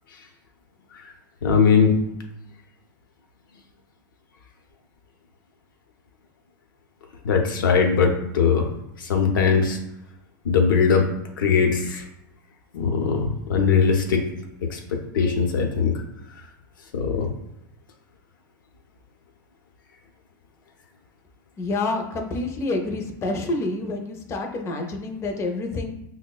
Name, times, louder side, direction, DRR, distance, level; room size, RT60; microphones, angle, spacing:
voice 1, 1.4-2.0 7.2-8.7 9.0-9.8 10.4-11.1 11.4-12.0 12.7-14.2 14.7-15.9 16.9-17.3, left 6 dB, 85° left, 3 dB, 0.6 m, -20 dB
voice 2, 21.6-25.9, left 2 dB, 25° left, 3 dB, 0.5 m, -28 dB
5.7 x 2.1 x 2.3 m, 0.82 s
hypercardioid pair, 115°, 11 cm